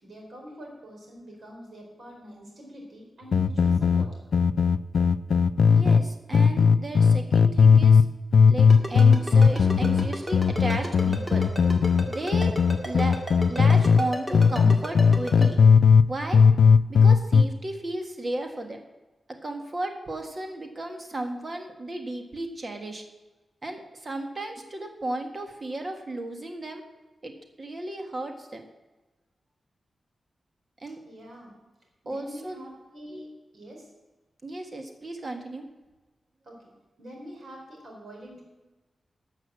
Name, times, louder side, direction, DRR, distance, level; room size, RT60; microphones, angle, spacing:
voice 1, 0.0-4.1 31.0-31.5 32.0-33.9 36.4-36.7 37.0-38.4, equal, 60° right, 0 dB, 4.5 m, -45 dB
sound 1, 3.3-6.0 6.3-8.1 8.3-14.0 14.3-16.1 16.3-17.4, left 5 dB, 70° left, 0.4 m, -18 dB
voice 2, 5.7-8.0 8.5-11.5 12.1-12.5 12.8-13.2 13.5-15.6 16.1-16.4 16.9-18.8 19.3-23.0 23.6-26.8 27.2-28.6 30.8-31.0 32.0-32.7 34.4-35.7, right 2 dB, 35° right, 4 dB, 1.6 m, -34 dB
Ringtone, 8.7-15.5, equal, 15° right, 2.0 m, -34 dB
12.5 x 6.6 x 7.6 m, 1.1 s
wide cardioid pair, 120°, 0 cm